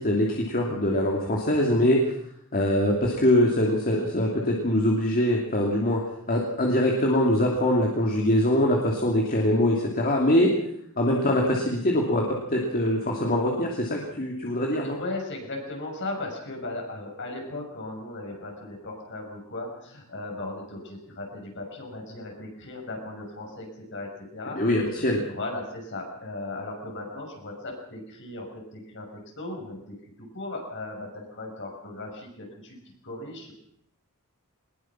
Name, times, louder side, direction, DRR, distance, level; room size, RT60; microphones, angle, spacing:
voice 1, 0.0-2.1 2.5-6.0 6.3-10.5 11.0-15.0 24.6-25.2, left 1 dB, 40° left, -1 dB, 2.8 m, -23 dB
voice 2, 14.8-24.6 24.9-28.5 28.7-30.0 30.3-32.8 33.0-33.5, left 2 dB, 55° left, 1 dB, 6.4 m, -37 dB
21.5 x 20.5 x 6.1 m, 0.70 s
head